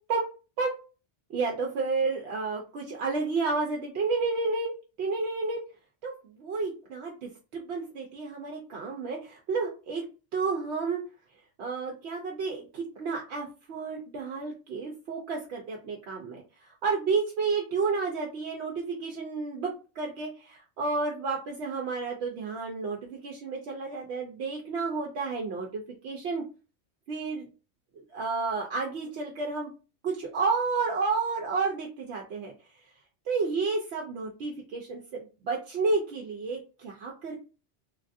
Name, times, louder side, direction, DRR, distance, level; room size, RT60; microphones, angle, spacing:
voice 1, 1.3-4.7 5.0-5.6 6.0-10.0 10.3-11.0 11.6-16.4 16.8-26.4 27.1-27.5 28.1-29.7 30.0-32.5 33.3-37.4, right 4 dB, 75° right, 0 dB, 0.9 m, -31 dB
3.1 x 2.5 x 2.5 m, 0.33 s
omnidirectional pair, 1.2 m